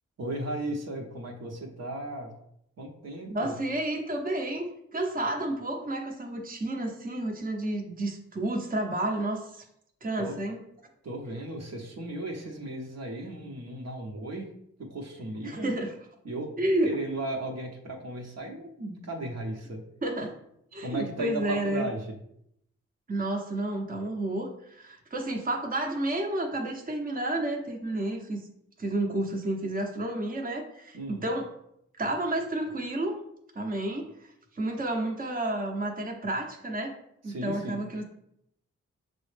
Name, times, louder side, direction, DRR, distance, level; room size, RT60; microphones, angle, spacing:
voice 1, 0.2-2.3 2.8-3.5 10.2-10.4 11.0-14.5 14.8-15.7 16.2-16.5 16.8-19.8 20.8-22.0 30.9-31.3 37.2-37.8, right 1 dB, 60° right, 0 dB, 0.9 m, -36 dB
voice 2, 3.3-4.6 4.9-9.6 10.0-10.6 15.4-15.9 16.6-17.0 20.0-20.3 20.7-21.9 23.1-28.4 28.8-31.5 32.0-33.1 33.5-34.1 34.5-36.9 37.2-38.0, right 1 dB, 30° right, 2 dB, 0.8 m, -30 dB
6.1 x 2.1 x 3.2 m, 0.75 s
supercardioid pair, 40°, 30 cm